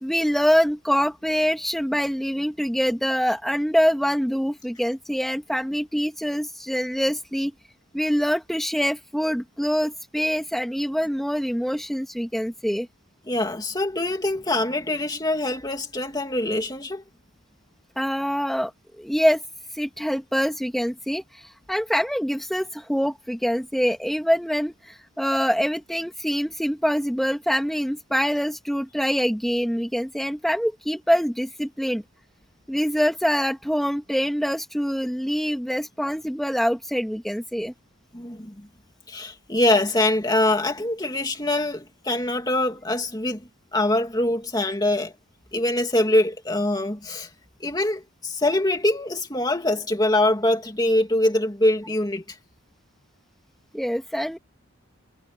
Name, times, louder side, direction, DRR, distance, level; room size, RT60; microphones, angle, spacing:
voice 1, 0.0-7.5 7.9-12.9 18.0-18.7 19.0-19.4 19.7-21.2 21.7-32.0 32.7-37.7 53.7-54.4, equal, ahead, 2.5 m, -24 dB
voice 2, 13.3-17.0 38.1-38.7 39.1-45.1 45.5-47.3 47.6-52.4, left 1 dB, 20° left, 2.5 m, -24 dB
head